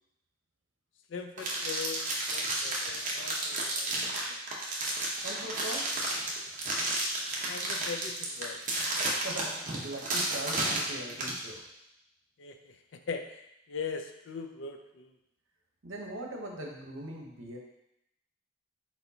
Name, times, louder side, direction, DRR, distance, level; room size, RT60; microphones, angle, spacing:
voice 1, 1.1-2.0 2.3-4.4 7.5-8.6 12.4-13.4 13.7-15.1, left 5 dB, 65° left, 6 dB, 0.4 m, -41 dB
sound 1, 1.4-11.4, right 2 dB, 40° right, 0.8 m, -32 dB
voice 2, 5.2-5.9 9.2-9.6 9.8-11.6 15.8-17.6, right 1 dB, 75° right, 0 dB, 0.9 m, -40 dB
4.4 x 4.3 x 2.7 m, 0.82 s
head